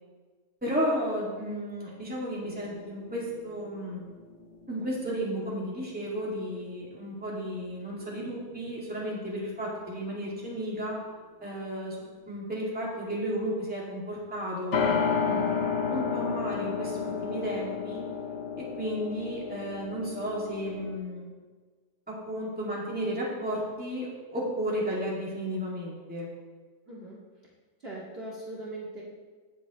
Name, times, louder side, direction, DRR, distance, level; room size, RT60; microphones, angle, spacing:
voice 1, 0.6-4.0 4.7-11.0 11.4-14.9 15.3-15.6 15.9-18.0 18.5-21.3 22.1-26.3, equal, 5° right, -6 dB, 2.3 m, -33 dB
sound 1, 2.4-6.2 6.5-6.6 14.7-21.0, left 6 dB, 55° left, 1.0 m, -32 dB
voice 2, 26.9-27.2 27.8-29.0, right 2 dB, 40° right, -6 dB, 2.3 m, -40 dB
17.0 x 6.9 x 3.1 m, 1.4 s
omnidirectional pair, 1.6 m